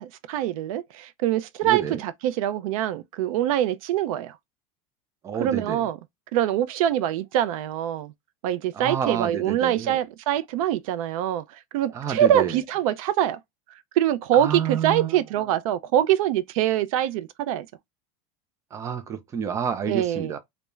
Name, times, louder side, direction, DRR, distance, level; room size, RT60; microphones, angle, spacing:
voice 1, 0.0-4.4 5.4-6.0 6.3-8.1 8.4-11.4 11.7-13.4 14.0-17.7 19.9-20.3, right 11 dB, 85° right, 0.4 m, -24 dB
voice 2, 1.6-2.0 5.2-5.9 8.7-10.0 11.9-12.6 14.3-15.2 18.7-20.4, right 8 dB, 15° right, 0.4 m, -29 dB
2.3 x 2.1 x 3.0 m
supercardioid pair, 155°, 18 cm